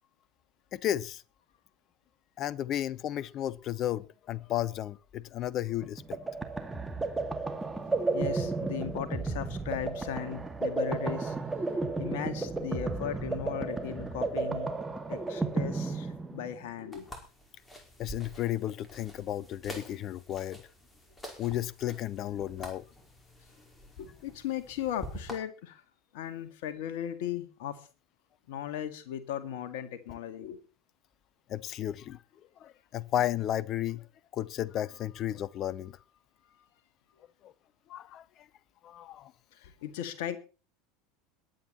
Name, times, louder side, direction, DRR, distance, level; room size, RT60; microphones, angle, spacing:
voice 1, 0.7-1.2 2.4-6.2 7.7-7.9 18.0-20.6 21.4-22.8 31.5-32.2 32.6-34.1 34.3-36.0 37.4-37.5 37.9-38.3 38.8-39.3, left 12 dB, 40° left, 0.7 m, -33 dB
sound 1, 5.8-16.7, right 3 dB, 10° right, 2.4 m, -33 dB
voice 2, 7.9-11.4 11.6-14.7 15.1-17.1 24.0-25.8 26.1-27.9 28.5-30.6 39.5-40.4, left 10 dB, 60° left, 2.0 m, -37 dB
sound 2, 16.9-25.4, equal, 15° left, 5.0 m, -47 dB
22.0 x 9.3 x 4.3 m
figure-of-eight pair, 75°, 0 cm